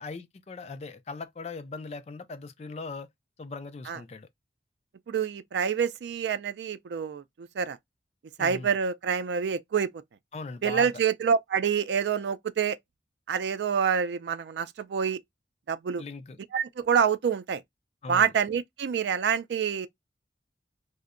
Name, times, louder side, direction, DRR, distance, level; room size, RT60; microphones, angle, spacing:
voice 1, 0.0-3.1 3.4-4.3 8.4-8.7 10.3-10.9 16.0-16.4 18.0-18.3, left 3 dB, 35° left, 0.3 m, -39 dB
voice 2, 5.1-7.8 8.4-9.9 10.6-12.8 13.3-15.2 15.7-16.0 16.5-17.6 18.1-19.9, right 7 dB, 80° right, 0.3 m, -27 dB
2.6 x 2.1 x 2.4 m
head